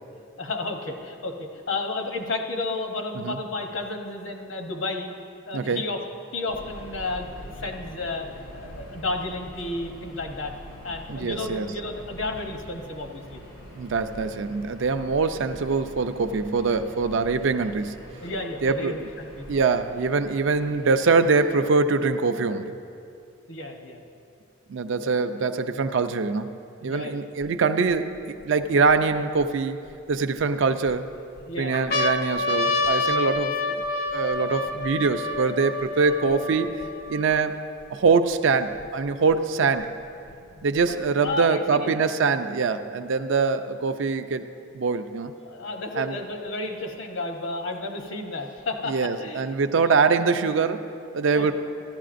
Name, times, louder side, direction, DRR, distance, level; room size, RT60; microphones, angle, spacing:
voice 1, 0.4-5.1 5.4-6.0 6.3-10.5 10.8-13.4 18.2-19.5 23.5-24.0 25.0-25.1 26.9-27.3 31.5-32.0 33.1-33.3 36.2-36.3 40.9-41.0 41.2-42.0 45.4-49.5 49.8-49.9 51.3-51.5, left 2 dB, 60° left, 3 dB, 0.9 m, -32 dB
Subway metro underground, 6.5-21.8, equal, 85° left, 2.5 m, -44 dB
voice 2, 11.1-11.7 13.8-18.0 18.6-19.1 19.5-22.7 24.7-26.5 26.8-29.8 30.1-31.1 31.6-33.8 34.1-37.6 37.9-39.9 40.6-44.4 44.7-45.3 46.0-46.2 48.9-50.9 51.1-51.5, right 4 dB, 60° right, 9 dB, 0.4 m, -23 dB
sound 1, 27.4-27.5 28.2-29.4 30.1-30.9 31.4-31.5 31.7-37.4 38.1-38.2 38.3-39.3 40.3-41.3, left 3 dB, 45° left, 0.5 m, -28 dB
14.5 x 11.0 x 2.5 m, 2.6 s
head